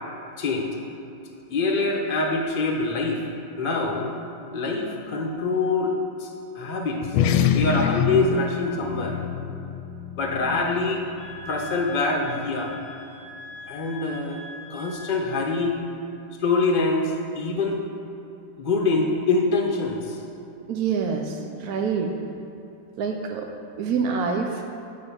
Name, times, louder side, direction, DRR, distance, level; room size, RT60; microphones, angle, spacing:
voice 1, 0.4-0.7 1.5-3.2 3.6-4.1 4.5-5.9 6.2-6.3 6.5-7.0 7.5-9.2 10.2-11.0 11.5-12.8 13.7-14.4 14.7-15.8 16.4-17.8 18.6-20.2, left 3 dB, 35° left, 0 dB, 0.8 m, -24 dB
sound 1, 7.0-11.8, left 8 dB, 80° left, 1.4 m, -26 dB
sound 2, 11.1-15.4, left 2 dB, 5° right, 2.0 m, -42 dB
voice 2, 20.7-22.1 23.0-23.5 23.8-24.6, right 5 dB, 70° right, 2 dB, 0.9 m, -26 dB
9.3 x 5.5 x 6.9 m, 2.9 s
omnidirectional pair, 2.3 m